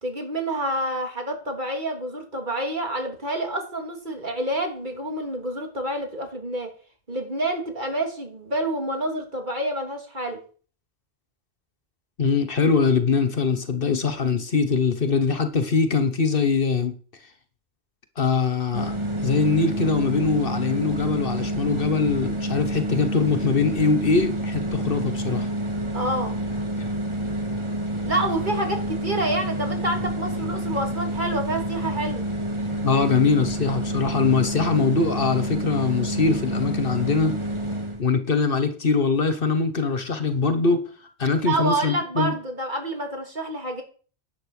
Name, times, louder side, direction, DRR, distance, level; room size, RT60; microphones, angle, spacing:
voice 1, 0.0-6.7 7.1-10.4 25.9-26.4 28.0-32.2 41.4-43.8, right 1 dB, 45° right, 3 dB, 3.1 m, -28 dB
voice 2, 12.2-16.9 18.2-25.5 32.8-37.4 38.0-40.8 41.2-42.3, left 4 dB, 55° left, 10 dB, 1.3 m, -22 dB
sound 1, 18.7-38.0, right 1 dB, 25° right, 1.8 m, -28 dB
10.5 x 8.3 x 6.5 m, 0.41 s
omnidirectional pair, 1.1 m